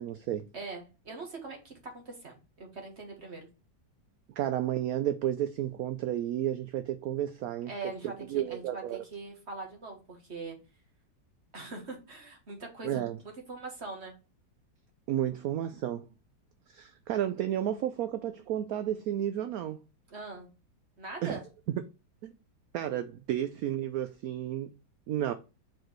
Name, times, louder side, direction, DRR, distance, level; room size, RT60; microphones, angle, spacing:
voice 1, 0.0-0.5 4.4-7.7 8.3-9.0 12.8-13.2 15.1-16.0 16.7-19.8 21.2-21.4 22.2-22.3 22.7-24.7 25.1-25.3, right 11 dB, 75° right, 0.8 m, -32 dB
voice 2, 0.5-3.5 7.7-10.6 11.5-14.2 20.1-20.5 21.0-21.4, right 3 dB, 40° right, 1.8 m, -42 dB
4.8 x 4.6 x 4.4 m
omnidirectional pair, 2.0 m